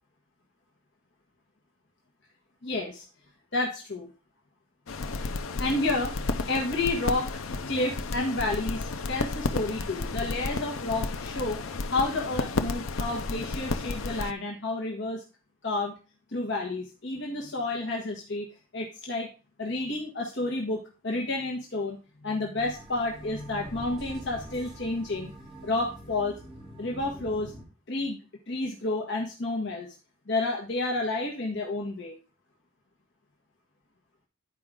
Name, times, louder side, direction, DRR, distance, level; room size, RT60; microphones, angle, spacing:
voice 1, 2.6-3.0 3.5-4.1 5.6-6.1 6.5-7.4 7.7-11.6 11.9-15.2 15.6-16.0 16.3-18.5 18.7-19.3 19.6-25.3 25.6-26.3 26.8-27.5 27.9-28.2 28.5-29.9 30.3-32.1, left 2 dB, 60° left, 0 dB, 1.4 m, -30 dB
sound 1, 4.9-14.3, left 3 dB, 90° left, 0.7 m, -32 dB
sound 2, 22.6-27.6, equal, ahead, 2.6 m, -45 dB
10.5 x 4.8 x 3.7 m, 0.33 s
head